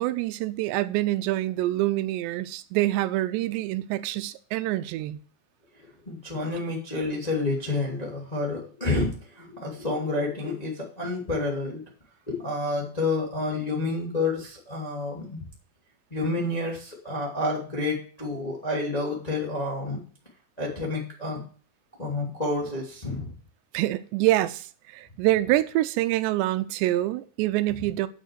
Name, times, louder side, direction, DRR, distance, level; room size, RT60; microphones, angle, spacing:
voice 1, 0.0-5.2 23.7-28.1, right 16 dB, 85° right, 2.8 m, -26 dB
voice 2, 6.0-11.8 12.3-15.4 16.1-20.0 20.6-21.4 22.0-23.3, left 2 dB, 15° left, 1.6 m, -29 dB
8.3 x 6.4 x 8.1 m
omnidirectional pair, 5.0 m